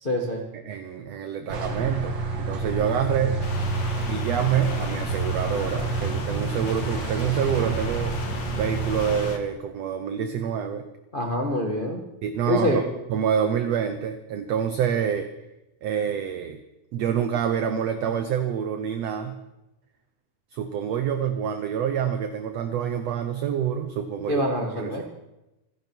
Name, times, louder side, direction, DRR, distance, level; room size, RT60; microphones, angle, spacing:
voice 1, 0.0-0.4 11.1-12.0 12.5-12.8 24.3-25.0, left 1 dB, 65° left, 1 dB, 0.5 m, -25 dB
voice 2, 0.5-3.4 4.1-8.2 8.5-10.8 12.2-12.8 13.1-15.3 15.8-16.6 16.9-19.4 20.5-24.4 24.8-25.0, right 8 dB, 70° right, 8 dB, 1.7 m, -27 dB
sound 1, 1.5-9.3, right 3 dB, 40° right, 1.9 m, -28 dB
sound 2, 3.4-9.4, left 7 dB, 80° left, 2.9 m, -38 dB
27.0 x 11.0 x 4.6 m, 0.95 s
omnidirectional pair, 3.8 m